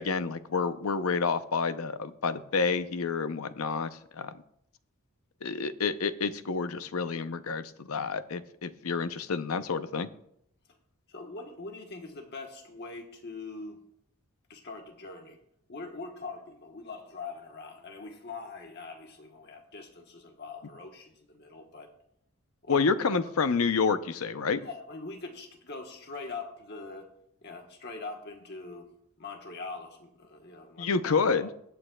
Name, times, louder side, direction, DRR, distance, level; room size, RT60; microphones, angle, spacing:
voice 1, 0.0-4.4 5.4-10.1 22.7-24.6 30.8-31.5, left 5 dB, 75° left, 11 dB, 0.6 m, -29 dB
voice 2, 11.1-13.8 14.5-15.4 15.7-21.9 22.6-23.0 24.6-27.1 27.4-28.9 29.2-31.5, left 3 dB, 50° left, 3 dB, 1.1 m, -43 dB
21.0 x 8.6 x 2.3 m, 0.74 s
head